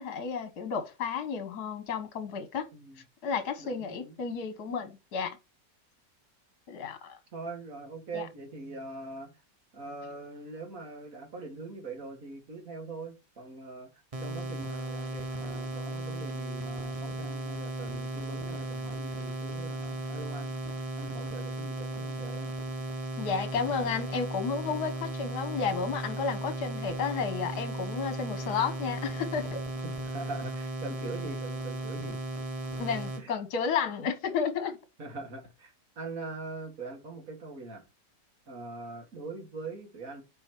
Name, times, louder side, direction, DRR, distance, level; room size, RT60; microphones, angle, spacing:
voice 1, 0.0-2.7 3.2-5.4 6.7-7.2 8.1-8.2 23.2-29.6 32.8-34.8, left 6 dB, 70° left, 1.6 m, -32 dB
voice 2, 2.7-3.0 3.6-4.2 7.3-9.4 9.7-13.9 14.2-20.5 21.0-22.5 29.8-32.2 32.7-32.8 33.2-33.3 35.0-37.8 38.5-40.2, right 3 dB, 50° right, 2.3 m, -42 dB
sound 1, 14.1-33.2, right 1 dB, 25° right, 0.9 m, -36 dB
7.6 x 4.4 x 4.5 m
omnidirectional pair, 1.8 m